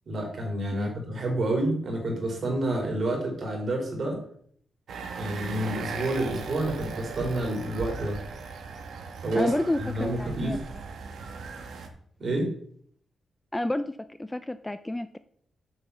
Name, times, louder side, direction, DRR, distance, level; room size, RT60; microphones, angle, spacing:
voice 1, 0.1-4.2 5.2-8.2 9.2-9.5 9.8-10.6 12.2-12.5, right 1 dB, 45° right, 1 dB, 3.5 m, -29 dB
sound 1, 4.9-11.9, right 5 dB, 70° right, 1.5 m, -38 dB
voice 2, 9.4-9.8 10.2-10.6 13.5-15.2, left 1 dB, 10° left, 12 dB, 0.4 m, -29 dB
7.3 x 6.7 x 6.8 m, 0.62 s
wide cardioid pair, 145°, 0 cm